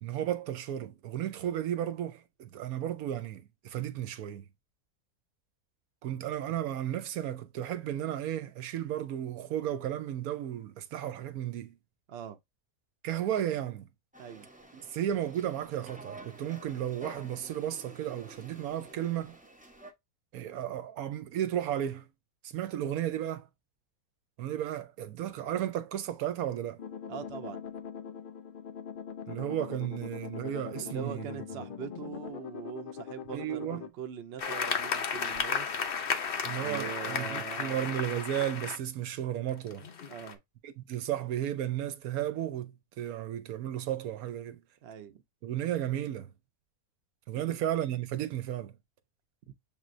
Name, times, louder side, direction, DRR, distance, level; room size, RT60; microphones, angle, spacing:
voice 1, 0.0-4.5 6.0-11.8 13.0-13.9 14.7-19.4 20.3-22.1 22.4-23.5 24.4-26.8 29.3-31.4 33.3-33.8 36.4-39.9 40.6-44.6 45.4-46.3 47.3-48.7, right 11 dB, 80° right, 1.1 m, -34 dB
sound 1, 14.1-19.9, right 2 dB, 10° right, 0.5 m, -50 dB
sound 2, 26.8-33.9, left 7 dB, 90° left, 0.4 m, -42 dB
voice 2, 27.1-27.6 30.5-35.7 36.4-37.9 40.1-40.4 44.8-45.2, right 8 dB, 55° right, 0.8 m, -42 dB
sound 3, 34.4-38.8 39.5-40.3, left 6 dB, 50° left, 0.7 m, -33 dB
6.7 x 3.1 x 2.5 m
omnidirectional pair, 1.5 m